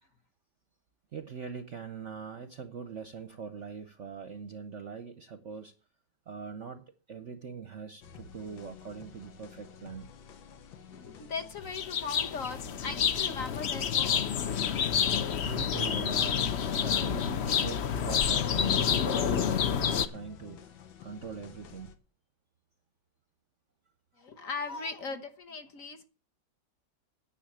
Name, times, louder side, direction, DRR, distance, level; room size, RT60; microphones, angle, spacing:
voice 1, 1.1-5.7 6.3-10.1 15.1-20.6 21.0-21.9, right 6 dB, 55° right, 0.8 m, -42 dB
sound 1, 8.0-22.0, left 5 dB, 90° left, 1.9 m, -50 dB
voice 2, 10.9-14.9 15.2-15.3 24.2-26.0, left 4 dB, 50° left, 1.3 m, -39 dB
sound 2, 11.7-20.1, left 8 dB, 75° left, 0.6 m, -28 dB
9.9 x 6.7 x 8.5 m
omnidirectional pair, 2.1 m